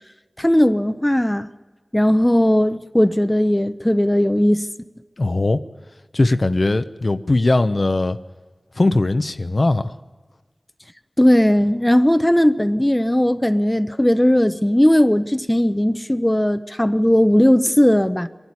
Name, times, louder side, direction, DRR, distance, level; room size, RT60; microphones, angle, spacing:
voice 1, 0.4-1.5 1.9-4.6 11.2-18.3, equal, 15° left, 0.7 m, -17 dB
voice 2, 5.2-5.6 6.1-8.2 8.8-9.9, left 2 dB, 60° left, 0.7 m, -19 dB
24.0 x 11.5 x 9.7 m
wide cardioid pair, 60°, 0 cm